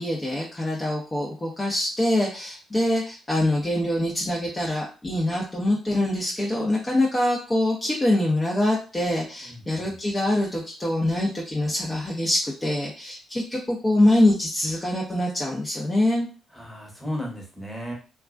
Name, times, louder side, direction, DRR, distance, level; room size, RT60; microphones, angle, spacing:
voice 1, 0.0-16.3, left 1 dB, 25° left, -3 dB, 0.7 m, -24 dB
voice 2, 9.4-9.8 16.5-17.9, equal, ahead, -1 dB, 1.0 m, -34 dB
2.2 x 2.2 x 2.4 m, 0.36 s
hypercardioid pair, 45°, 0 cm